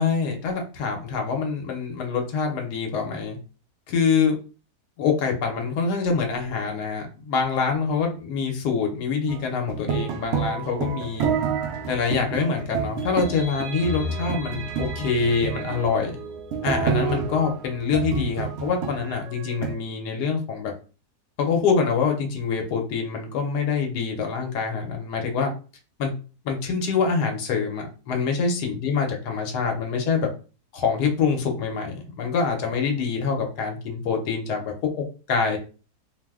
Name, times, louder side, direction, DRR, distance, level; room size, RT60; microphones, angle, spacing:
voice 1, 0.0-3.4 3.9-4.4 5.0-11.3 11.9-16.2 16.6-20.7 21.4-25.5 26.0-26.1 26.4-30.3 30.7-34.7 35.3-35.6, left 5 dB, 85° left, 2 dB, 1.3 m, -25 dB
sound 1, 9.3-19.7, right 6 dB, 75° right, 0.6 m, -29 dB
2.9 x 2.0 x 3.4 m, 0.36 s
omnidirectional pair, 1.7 m